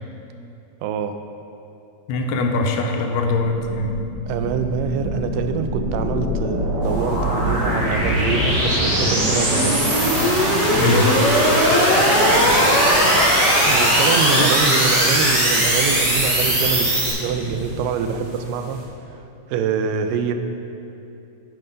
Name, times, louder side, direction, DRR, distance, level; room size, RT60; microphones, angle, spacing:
voice 1, 0.8-1.2 4.3-9.8 13.6-18.8 19.1-19.2 19.5-20.3, right 6 dB, 90° right, 7 dB, 2.2 m, -25 dB
voice 2, 2.1-3.9 10.8-11.1 14.3-14.5, left 3 dB, 85° left, 3 dB, 2.3 m, -22 dB
sound 1, 3.3-17.1, equal, 35° right, 1.8 m, -19 dB
sound 2, 6.8-18.8, right 1 dB, 55° right, 1.2 m, -33 dB
9.4 x 5.5 x 5.1 m, 2.7 s
omnidirectional pair, 3.8 m